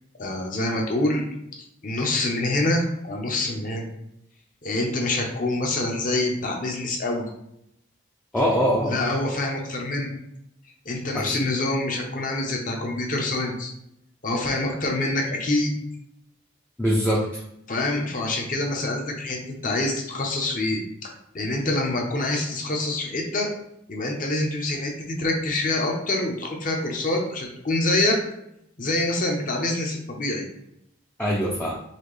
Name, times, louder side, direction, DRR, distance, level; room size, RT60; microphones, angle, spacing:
voice 1, 0.2-1.2 1.8-3.9 4.6-7.2 8.8-10.1 10.9-13.7 14.2-15.7 17.7-19.4 19.6-23.5 23.9-28.2 28.8-30.4, left 2 dB, 40° left, 1 dB, 0.7 m, -26 dB
voice 2, 8.3-9.1 11.1-11.4 16.8-17.4 31.2-31.8, equal, 5° left, -4 dB, 0.4 m, -23 dB
4.1 x 2.8 x 3.1 m, 0.79 s
head